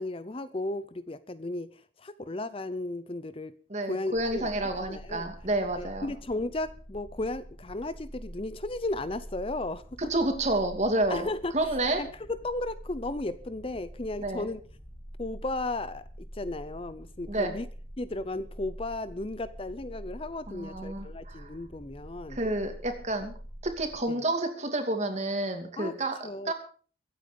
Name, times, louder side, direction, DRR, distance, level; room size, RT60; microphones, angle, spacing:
voice 1, 0.0-3.6 3.9-4.5 4.9-5.3 5.8-9.8 11.1-11.6 12.0-12.1 12.4-14.6 15.2-16.0 16.3-17.7 18.0-22.4 24.1-24.2 25.8-25.9 26.2-26.5, left 2 dB, 30° left, 14 dB, 0.6 m, -34 dB
voice 2, 3.7-6.1 10.1-11.3 11.5-12.0 14.2-14.5 17.3-17.5 20.5-21.5 22.3-23.3 23.6-26.2 26.4-26.5, right 2 dB, 35° right, 6 dB, 2.6 m, -29 dB
sound 1, 4.1-24.0, equal, 5° right, 2.6 m, -46 dB
23.5 x 9.1 x 5.2 m, 0.42 s
head